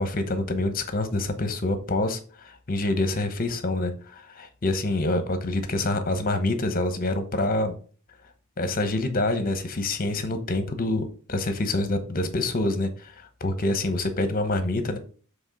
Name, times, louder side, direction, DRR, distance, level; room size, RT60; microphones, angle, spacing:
voice 1, 0.0-7.8 8.6-15.0, left 2 dB, 45° left, 9 dB, 1.0 m, -26 dB
7.1 x 3.4 x 5.2 m, 0.40 s
head